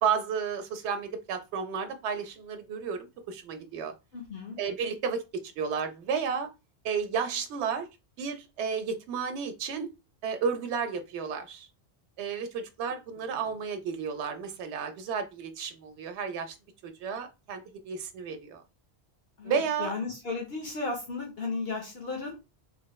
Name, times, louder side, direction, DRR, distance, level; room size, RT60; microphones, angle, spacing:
voice 1, 0.0-3.9 4.6-6.5 6.8-7.9 8.2-9.9 10.2-11.7 12.2-16.5 16.8-18.6 19.4-19.9, right 6 dB, 80° right, 0.8 m, -32 dB
voice 2, 4.1-4.6 19.4-22.4, left 3 dB, 65° left, 1.1 m, -35 dB
3.0 x 3.0 x 2.2 m
omnidirectional pair, 1.1 m